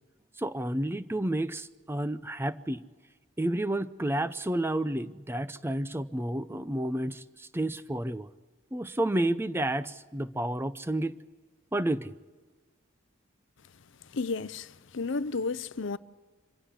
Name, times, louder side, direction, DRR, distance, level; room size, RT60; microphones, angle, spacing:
voice 1, 0.4-2.8 3.4-8.3 8.7-11.1 11.7-12.1, right 1 dB, 10° right, 0.6 m, -30 dB
voice 2, 14.1-16.0, left 4 dB, 65° left, 0.6 m, -32 dB
24.5 x 16.0 x 8.2 m
head